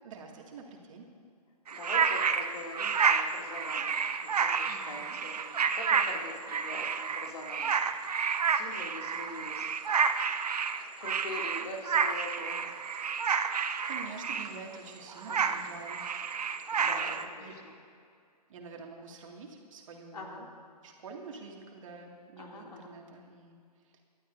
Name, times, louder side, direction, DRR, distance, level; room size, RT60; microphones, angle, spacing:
voice 1, 0.0-1.1 4.7-5.2 13.9-16.3 16.8-17.6 18.5-20.5 20.8-23.6 23.9-24.0, right 4 dB, 55° right, 0 dB, 2.3 m, -47 dB
voice 2, 1.7-5.5 5.7-7.8 8.5-9.7 11.0-12.7 15.3-15.5 16.9-17.1 20.1-20.4 22.4-22.8, left 2 dB, 70° left, -1 dB, 2.8 m, -43 dB
sound 1, 1.7-14.8 15.1-17.2, right 6 dB, 75° right, 0.8 m, -30 dB
24.0 x 12.0 x 2.7 m, 2.3 s
hypercardioid pair, 140°, 20 cm